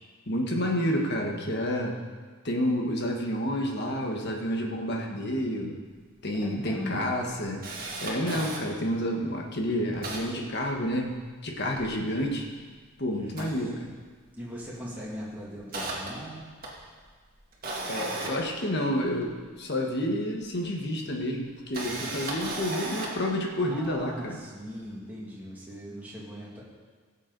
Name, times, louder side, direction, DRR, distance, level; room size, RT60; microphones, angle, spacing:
voice 1, 0.3-2.0 2.4-5.7 6.2-7.6 8.0-11.1 11.4-12.5 13.0-13.9 17.9-24.4, equal, 50° left, 1 dB, 1.5 m, -29 dB
Camera, 6.0-6.1 6.4-6.5 6.9-8.6 9.2-9.3 9.6-11.2 11.5-12.8 13.2-14.3 14.6-14.9 15.3-19.3 20.4-20.5 21.5-23.3 23.8-24.0, right 2 dB, 45° right, 2.1 m, -37 dB
voice 2, 6.3-7.0 13.2-13.3 14.3-16.4 21.7-22.3 23.6-26.6, equal, 10° right, -6 dB, 2.4 m, -40 dB
16.5 x 7.4 x 4.0 m, 1.5 s
head